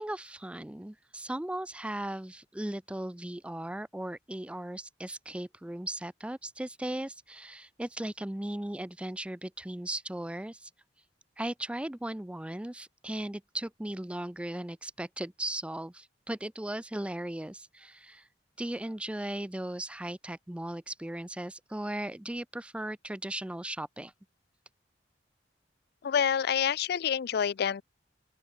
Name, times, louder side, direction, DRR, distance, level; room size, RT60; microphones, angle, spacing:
voice 1, 0.0-10.7 11.4-18.3 18.6-24.1, right 1 dB, 5° right, 0.4 m, -37 dB
voice 2, 26.0-27.8, left 8 dB, 60° left, 0.4 m, -27 dB
open air
head